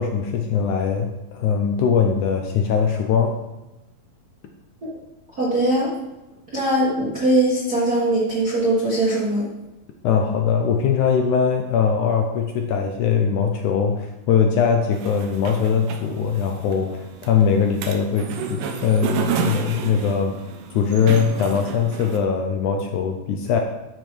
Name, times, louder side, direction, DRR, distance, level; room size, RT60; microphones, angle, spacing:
voice 1, 0.0-3.4 10.0-20.3 20.7-23.6, left 6 dB, 75° left, 3 dB, 1.9 m, -21 dB
voice 2, 5.4-5.9 6.5-9.5, right 1 dB, 45° right, -7 dB, 1.2 m, -20 dB
sound 1, 14.9-22.2, right 7 dB, 85° right, 2.6 m, -31 dB
13.0 x 5.1 x 4.6 m, 1.0 s
omnidirectional pair, 4.1 m